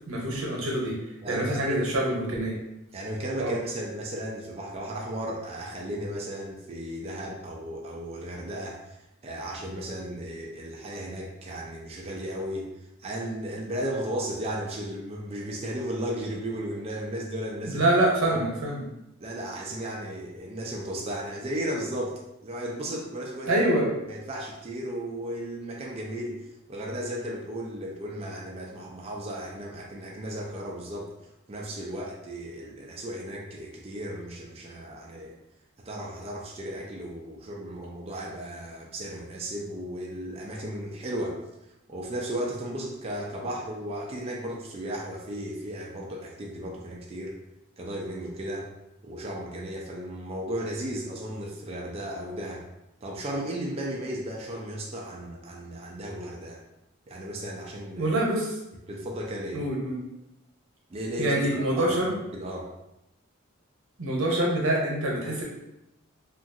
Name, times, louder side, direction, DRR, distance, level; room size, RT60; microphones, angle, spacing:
voice 1, 0.1-1.0 1.3-2.6 3.4-3.6 17.7-18.8 23.4-23.9 58.0-58.6 59.5-60.0 61.2-62.2 64.0-65.4, right 1 dB, 85° right, -2 dB, 0.9 m, -25 dB
voice 2, 1.2-1.8 2.9-8.8 9.2-12.7 13.0-17.9 18.2-18.4 19.2-23.6 24.1-26.4 26.7-31.1 31.5-35.3 35.9-41.4 41.9-47.4 47.8-48.7 49.0-52.6 53.0-56.6 57.1-58.1 58.9-59.6 60.9-62.7, right 1 dB, 30° right, -2 dB, 0.4 m, -35 dB
2.9 x 2.4 x 2.6 m, 0.89 s
head